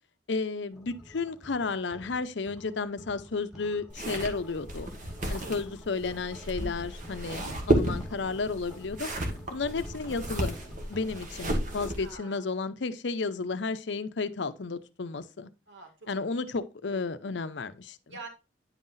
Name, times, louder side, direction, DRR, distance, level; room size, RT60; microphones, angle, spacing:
voice 1, 0.3-4.9 5.3-9.1 9.5-10.6 10.9-15.5 16.1-18.0, left 4 dB, 65° left, 0.6 m, -32 dB
sound 1, 0.7-11.2, equal, 5° right, 1.8 m, -49 dB
sound 2, 3.9-12.1, right 1 dB, 45° right, 1.6 m, -32 dB
voice 2, 11.8-12.4 15.7-16.2 16.9-17.3 18.1-18.3, right 3 dB, 80° right, 2.1 m, -47 dB
9.8 x 5.6 x 2.6 m
head